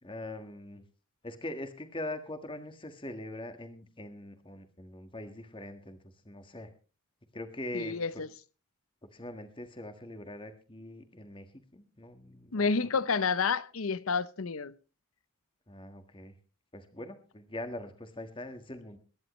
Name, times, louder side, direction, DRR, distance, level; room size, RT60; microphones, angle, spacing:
voice 1, 0.0-0.8 1.2-6.0 6.2-6.7 7.3-8.0 9.1-13.0 15.7-16.4 16.7-19.0, left 1 dB, 25° left, 1.5 m, -42 dB
voice 2, 7.7-8.3 12.5-14.7, left 5 dB, 70° left, 0.7 m, -29 dB
22.5 x 11.0 x 3.1 m
head